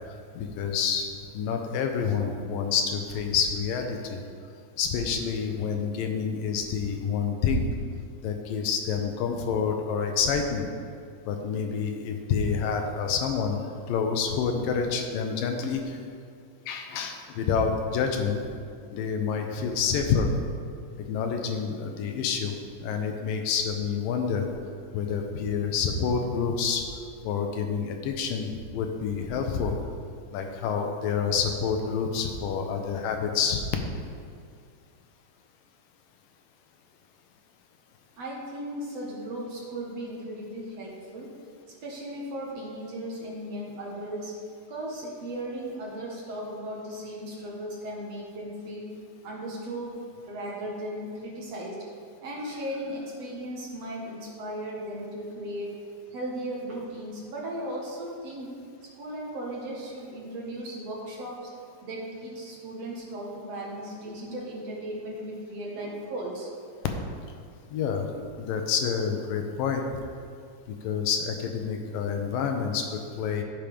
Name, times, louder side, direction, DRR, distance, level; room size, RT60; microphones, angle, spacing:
voice 1, 0.3-1.1 1.3-4.2 4.8-7.7 8.2-10.7 11.3-13.6 13.9-16.0 16.7-18.4 18.9-20.3 21.1-22.5 22.8-24.5 24.9-26.8 27.2-29.7 30.3-33.6 67.7-68.1 68.4-69.8 70.8-73.4, left 6 dB, 85° left, 4 dB, 2.6 m, -28 dB
voice 2, 38.2-41.3 41.8-44.3 44.7-48.9 49.2-50.0 50.2-51.9 52.2-55.7 56.1-58.6 58.9-61.5 61.8-66.5, right 1 dB, 55° right, -3 dB, 2.3 m, -36 dB
15.5 x 7.5 x 3.5 m, 2.2 s
omnidirectional pair, 4.0 m